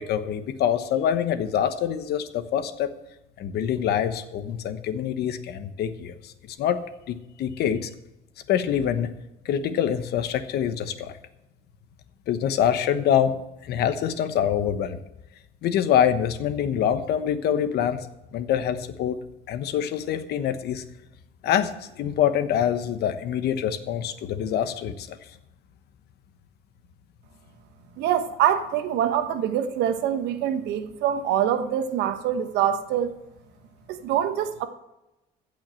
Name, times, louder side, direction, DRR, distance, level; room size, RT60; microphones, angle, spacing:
voice 1, 0.0-2.9 3.4-7.9 8.5-9.1 9.4-11.2 12.3-15.0 15.6-18.0 18.3-19.2 19.5-20.8 21.4-25.2, left 9 dB, 70° left, 1.1 m, -25 dB
voice 2, 28.0-33.1 33.9-34.7, right 10 dB, 90° right, 1.2 m, -24 dB
15.5 x 5.7 x 7.7 m
cardioid pair, 110°, 17 cm